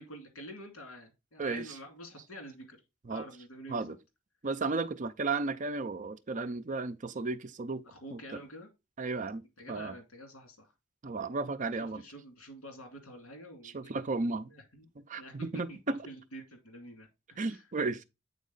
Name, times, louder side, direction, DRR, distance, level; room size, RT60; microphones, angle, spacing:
voice 1, 0.0-2.8 3.1-4.0 7.8-8.7 9.6-10.7 11.8-14.0 14.5-14.9 15.2-17.6, equal, 85° left, 2.4 m, -48 dB
voice 2, 4.4-7.8 8.1-8.2 9.0-9.4 9.7-9.9 11.0-12.0 13.7-14.5 15.0-16.0 17.4-18.0, right 3 dB, 40° right, 0.5 m, -34 dB
8.3 x 4.1 x 3.9 m
head